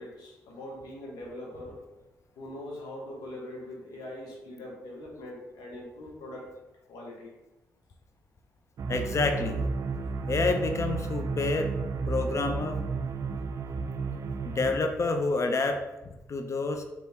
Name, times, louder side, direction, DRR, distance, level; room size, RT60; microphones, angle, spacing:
voice 1, 0.0-2.0 2.4-6.5 6.9-7.3, left 1 dB, 85° left, -3 dB, 1.3 m, -42 dB
sound 1, 8.8-14.8, right 4 dB, 55° right, 0.4 m, -32 dB
voice 2, 8.9-9.6 10.3-11.7 12.1-12.9 14.4-16.8, left 3 dB, 50° left, 6 dB, 0.6 m, -28 dB
3.5 x 3.0 x 4.3 m, 1.0 s
supercardioid pair, 55°, 7 cm